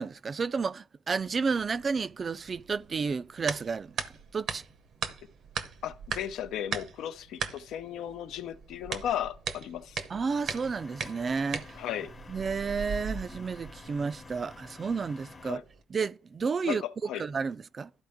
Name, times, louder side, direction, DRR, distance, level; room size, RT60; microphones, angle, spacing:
voice 1, 0.0-4.0 4.3-4.6 10.1-11.8 12.3-15.6 15.9-16.8 17.2-17.9, right 5 dB, 40° right, 0.3 m, -31 dB
sound 1, 1.2-15.8, right 6 dB, 70° right, 0.8 m, -40 dB
voice 2, 5.8-10.0 11.8-12.1 15.4-15.6 16.6-17.2, left 10 dB, 85° left, 0.6 m, -35 dB
sound 2, 10.3-15.5, left 3 dB, 30° left, 0.8 m, -49 dB
12.5 x 4.2 x 3.5 m
cardioid pair, 90°, 0 cm